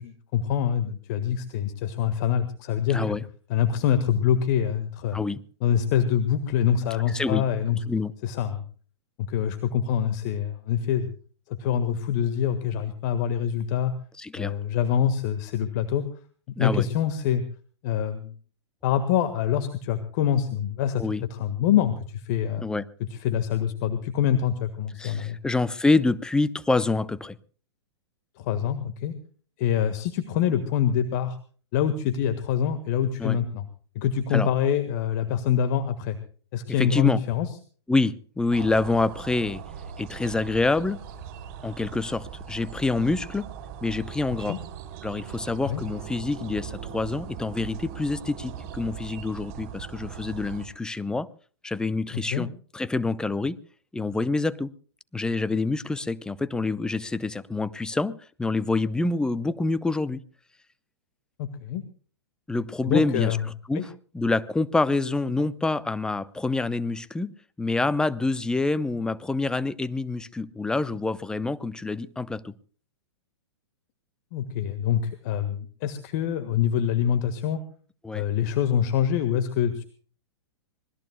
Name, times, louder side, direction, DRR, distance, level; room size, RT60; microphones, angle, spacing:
voice 1, 0.0-3.2 3.5-5.2 5.6-7.8 8.2-8.6 9.3-11.1 11.5-13.9 14.3-16.0 16.6-17.4 17.8-18.3 18.8-21.0 21.3-22.6 23.1-25.4 28.4-29.1 29.6-31.4 31.7-33.6 33.9-36.2 36.5-37.5 44.5-44.6 45.6-45.8 52.1-52.5 61.4-61.8 62.8-63.4 63.7-63.8 74.3-77.6 78.1-79.8, left 9 dB, 40° left, 1.6 m, -25 dB
voice 2, 2.9-3.2 5.1-5.4 7.1-7.5 7.9-8.1 14.2-14.5 16.6-16.9 21.0-21.2 22.6-22.8 25.0-27.4 33.2-33.4 34.3-34.5 36.8-37.2 37.9-39.6 40.0-41.0 41.6-43.5 43.8-44.6 45.0-51.3 51.6-53.6 53.9-54.7 55.1-60.2 62.5-63.4 63.7-67.3 67.6-72.5 78.0-78.2, left 3 dB, 5° left, 0.7 m, -26 dB
sound 1, 38.5-50.7, right 7 dB, 40° right, 3.9 m, -40 dB
25.5 x 20.0 x 2.3 m
figure-of-eight pair, 105°, 14 cm